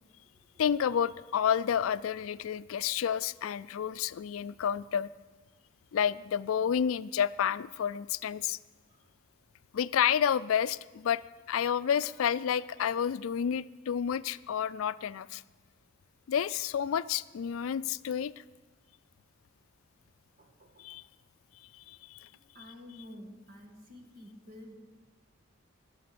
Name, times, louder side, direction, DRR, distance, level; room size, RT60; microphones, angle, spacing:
voice 1, 0.6-5.1 5.9-8.6 9.7-11.2 11.5-15.4 16.3-18.3 20.8-21.0 21.9-22.3, left 8 dB, 80° left, 17 dB, 0.4 m, -30 dB
voice 2, 20.4-21.0 22.5-24.7, left 1 dB, 45° right, 1 dB, 1.9 m, -50 dB
20.0 x 7.1 x 6.8 m, 1.3 s
head